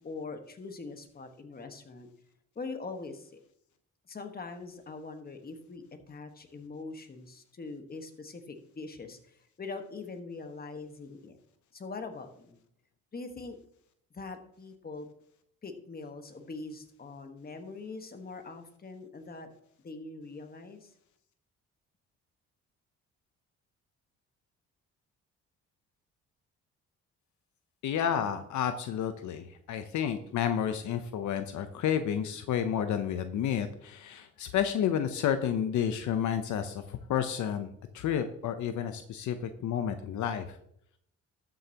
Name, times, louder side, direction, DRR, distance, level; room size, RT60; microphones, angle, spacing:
voice 1, 0.0-2.1 2.5-3.4 4.1-11.4 11.7-12.6 13.1-13.6 14.1-15.1 15.6-19.5 19.8-20.9, left 3 dB, 30° left, 6 dB, 1.4 m, -42 dB
voice 2, 27.8-40.6, left 9 dB, 75° left, 9 dB, 0.8 m, -31 dB
12.5 x 7.8 x 2.9 m, 0.70 s
cardioid pair, 90°, 30 cm